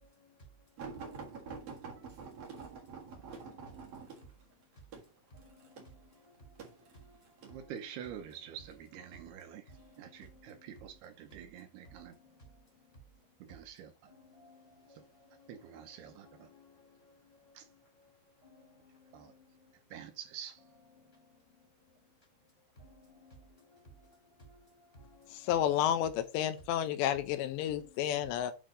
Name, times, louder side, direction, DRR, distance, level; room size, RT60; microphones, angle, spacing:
sound 1, 0.8-7.6 8.3-8.8 9.7-10.4 11.1-11.3 11.7-11.8, right 5 dB, 55° right, 1.7 m, -47 dB
voice 1, 1.0-2.0 3.3-3.7 4.1-4.2 5.3-6.2 6.6-6.7 6.9-7.2 7.5-7.7 9.7-10.7 12.0-12.6 12.9-13.0 14.1-15.5 16.0-17.0 17.3-17.4 18.4-19.5 21.0-21.6 22.8-23.8 24.4-24.7 24.9-25.5 27.8-28.2, equal, 15° left, 1.9 m, -59 dB
voice 2, 7.4-9.6 10.0-12.1 13.4-14.1 14.9-15.0 15.5-16.5 17.5-17.7 19.1-19.3 19.9-20.6, right 9 dB, 80° right, 2.6 m, -47 dB
voice 3, 25.5-28.5, left 11 dB, 85° left, 2.9 m, -31 dB
9.0 x 3.4 x 5.0 m
omnidirectional pair, 5.1 m